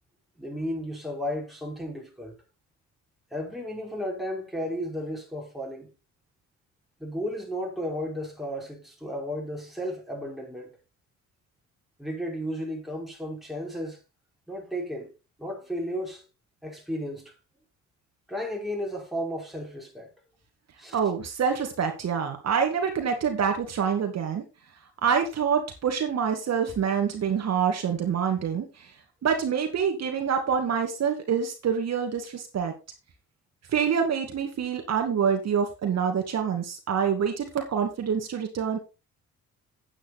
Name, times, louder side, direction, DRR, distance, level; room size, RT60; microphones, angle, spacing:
voice 1, 0.4-2.4 3.3-5.9 7.0-10.7 12.0-14.0 14.5-15.1 15.4-16.2 16.6-17.4 18.3-20.1 20.8-21.0, equal, ahead, 4.9 m, -33 dB
voice 2, 20.9-24.4 25.0-28.9 29.2-32.7 33.7-38.8, right 7 dB, 60° right, 2.2 m, -26 dB
8.8 x 8.7 x 4.3 m
cardioid pair, 90°, 30 cm